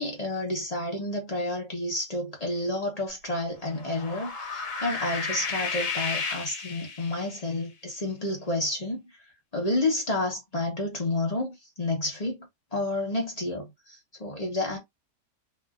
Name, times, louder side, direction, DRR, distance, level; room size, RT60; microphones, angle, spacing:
voice 1, 0.0-9.0 9.5-12.5 12.7-14.8, left 2 dB, 30° left, 0.7 m, -30 dB
sound 1, 3.6-7.4, left 5 dB, 75° left, 1.5 m, -33 dB
3.3 x 2.5 x 2.4 m
omnidirectional pair, 1.9 m